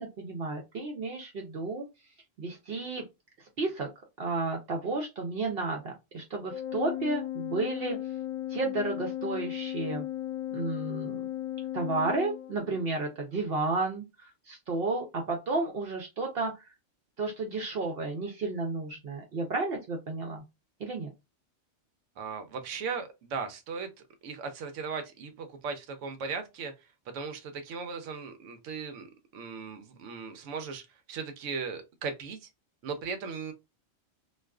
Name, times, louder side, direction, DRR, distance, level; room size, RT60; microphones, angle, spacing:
voice 1, 0.0-1.9 2.4-3.0 3.6-3.9 4.2-8.0 8.5-10.0 10.5-11.2 11.7-16.6 17.2-20.4 20.8-21.1, right 3 dB, 60° right, 0.7 m, -32 dB
Organ, 6.5-13.0, left 13 dB, 75° left, 0.9 m, -36 dB
voice 2, 22.2-23.9 24.2-26.7 27.1-29.1 29.3-30.8 31.1-32.4 32.8-33.5, right 5 dB, 90° right, 0.9 m, -37 dB
2.4 x 2.3 x 2.2 m
omnidirectional pair, 1.2 m